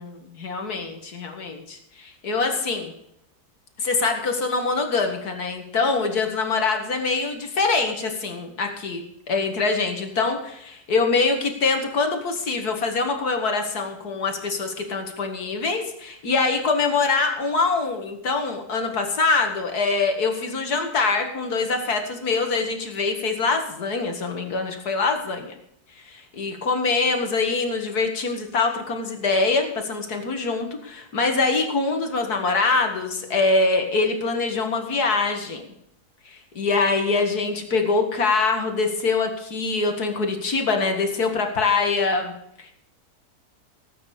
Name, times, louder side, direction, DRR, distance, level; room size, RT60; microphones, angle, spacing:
voice 1, 0.0-2.9 3.8-25.6 26.1-35.7 36.3-42.3 42.6-42.7, left 4 dB, 75° left, 4 dB, 2.5 m, -24 dB
17.5 x 8.7 x 5.0 m, 0.75 s
omnidirectional pair, 1.6 m